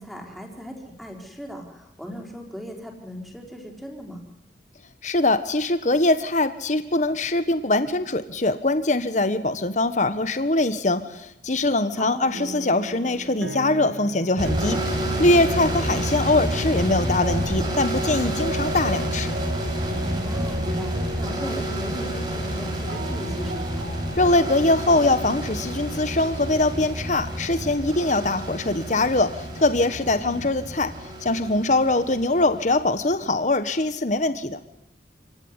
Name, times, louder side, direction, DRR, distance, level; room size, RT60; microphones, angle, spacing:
voice 1, 0.0-4.2 11.9-12.3 15.8-16.0 20.2-23.8, equal, ahead, 1 dB, 4.5 m, -38 dB
voice 2, 5.0-14.8 15.2-19.3 24.2-30.9 31.2-34.6, left 2 dB, 45° left, 11 dB, 1.3 m, -22 dB
sound 1, 12.3-26.3, right 1 dB, 65° right, 2.1 m, -38 dB
sound 2, 14.4-33.0, right 1 dB, 25° right, 7.1 m, -29 dB
28.0 x 17.0 x 9.7 m, 0.85 s
head